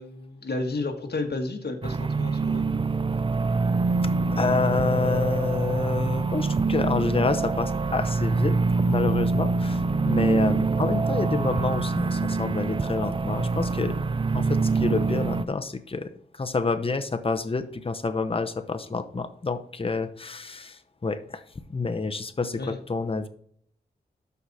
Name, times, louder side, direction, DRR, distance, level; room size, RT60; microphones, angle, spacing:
voice 1, 0.0-2.7 22.6-22.8, left 2 dB, 60° left, 4 dB, 1.6 m, -32 dB
sound 1, 1.8-15.5, right 4 dB, 30° right, 0.4 m, -25 dB
voice 2, 4.3-8.6 8.9-14.0 14.3-21.4 21.7-23.3, left 4 dB, 30° left, 8 dB, 0.8 m, -28 dB
12.5 x 4.8 x 4.1 m, 0.62 s
wide cardioid pair, 90°, 19 cm